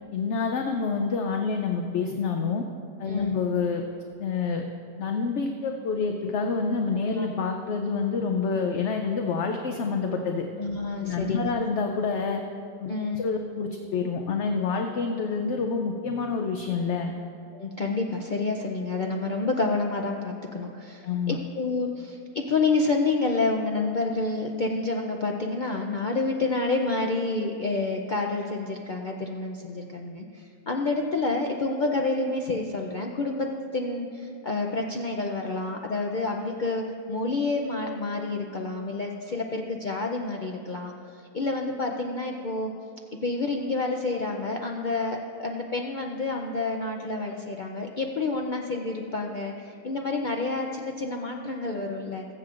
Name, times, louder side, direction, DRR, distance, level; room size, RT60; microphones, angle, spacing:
voice 1, 0.1-2.6 3.0-3.8 4.2-4.6 5.0-10.4 11.0-12.4 12.8-17.1 21.0-21.4, left 5 dB, 60° left, 3 dB, 0.8 m, -27 dB
voice 2, 3.1-3.4 7.1-7.3 10.6-11.5 12.9-13.2 17.5-42.7 43.2-52.2, left 3 dB, 80° left, 1 dB, 0.4 m, -29 dB
22.5 x 7.6 x 2.5 m, 2.5 s
omnidirectional pair, 1.6 m